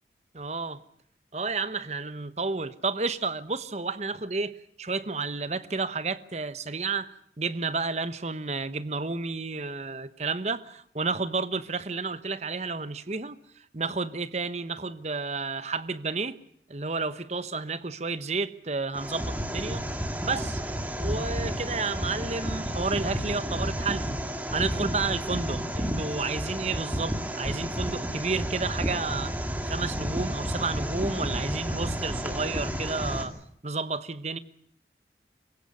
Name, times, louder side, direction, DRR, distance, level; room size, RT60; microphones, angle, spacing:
voice 1, 0.3-0.8 1.3-16.4 16.7-19.8 20.2-20.6 21.0-24.1 24.5-29.3 29.6-33.3 33.6-34.4, right 4 dB, 40° right, 1.0 m, -31 dB
sound 1, 18.9-33.2, equal, 10° right, 2.3 m, -31 dB
25.5 x 16.5 x 9.5 m
head